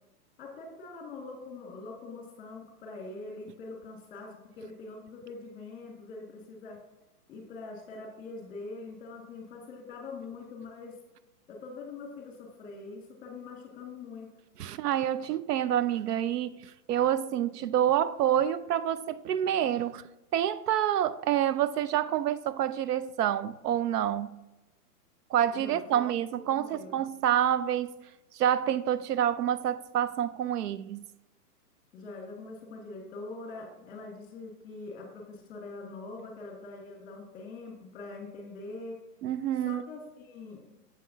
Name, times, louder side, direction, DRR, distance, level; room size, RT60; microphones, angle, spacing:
voice 1, 0.4-6.8 7.3-11.0 11.5-14.3 25.5-26.0 26.6-27.0 31.9-39.0 39.6-40.6, left 3 dB, 20° left, 1.8 m, -43 dB
voice 2, 14.6-20.0 20.3-24.4 25.3-27.9 28.3-31.0 39.2-39.8, right 10 dB, 85° right, 0.5 m, -28 dB
7.5 x 5.5 x 2.7 m
hypercardioid pair, 145°, 46 cm